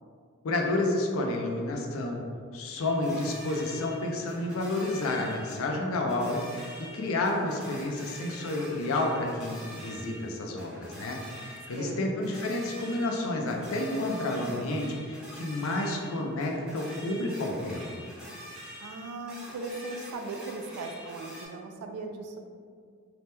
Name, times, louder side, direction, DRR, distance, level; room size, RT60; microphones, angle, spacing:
voice 1, 0.4-2.2 2.5-6.7 6.9-17.9, left 2 dB, 65° left, 1 dB, 0.4 m, -30 dB
sound 1, 2.8-5.8 6.1-21.5, equal, 5° right, 0.6 m, -46 dB
voice 2, 11.8-12.3 18.8-22.4, right 3 dB, 90° right, 4 dB, 0.3 m, -38 dB
2.8 x 2.1 x 3.3 m, 2.1 s
head